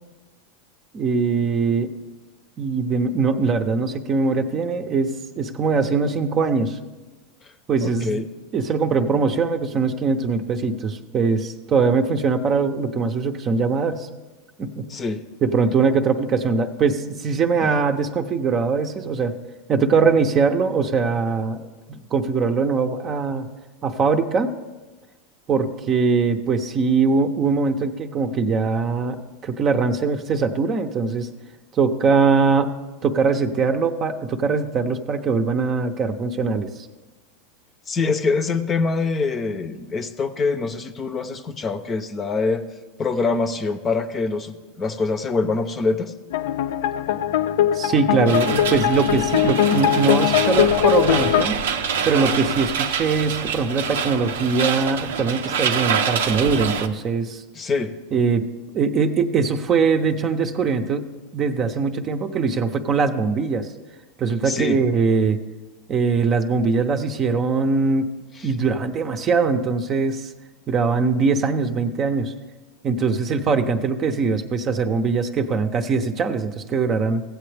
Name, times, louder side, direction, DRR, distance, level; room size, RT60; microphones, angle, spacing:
voice 1, 0.9-1.9 2.6-6.8 7.7-8.3 8.5-14.1 14.6-14.9 15.4-19.4 19.7-23.5 23.8-24.5 25.5-31.3 31.7-32.7 33.0-36.7 47.7-51.6 52.0-57.4 58.1-58.5 58.7-63.7 64.2-65.4 65.9-68.1 68.4-70.3 70.7-72.3 72.8-77.2, right 4 dB, 35° right, 7 dB, 0.7 m, -21 dB
voice 2, 7.8-8.2 14.9-15.2 17.6-17.8 37.9-42.6 43.0-46.1 57.5-57.9 64.4-64.8 68.4-68.5, left 4 dB, 30° left, 10 dB, 0.7 m, -24 dB
sound 1, 46.3-51.4, left 11 dB, 75° left, 0.4 m, -20 dB
sound 2, 48.3-56.9, right 7 dB, 85° right, 0.6 m, -26 dB
15.5 x 7.7 x 3.4 m, 1.2 s
hypercardioid pair, 105°, 0 cm